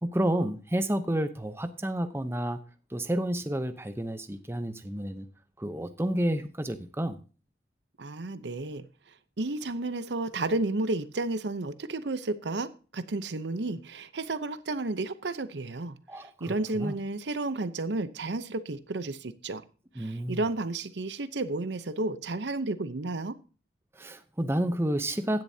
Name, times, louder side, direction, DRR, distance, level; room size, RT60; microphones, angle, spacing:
voice 1, 0.0-2.6 2.9-5.3 5.6-7.2 16.1-16.9 20.0-20.4 23.9-25.4, right 1 dB, 15° right, 0.7 m, -30 dB
voice 2, 8.0-8.9 9.4-19.6 20.0-23.3, right 2 dB, 80° right, 0.8 m, -32 dB
15.5 x 10.5 x 2.8 m
head